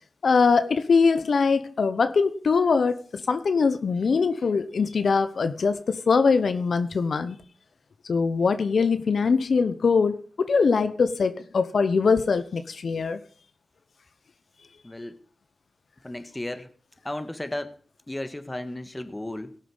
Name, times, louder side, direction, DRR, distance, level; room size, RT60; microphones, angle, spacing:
voice 1, 0.2-7.4 8.1-13.2, left 5 dB, 75° left, 10 dB, 0.8 m, -22 dB
voice 2, 14.8-15.2 16.0-16.7 17.0-17.8 18.1-19.6, left 1 dB, 20° left, 10 dB, 1.4 m, -34 dB
17.5 x 7.6 x 5.5 m, 0.43 s
cardioid pair, 65°, 0 cm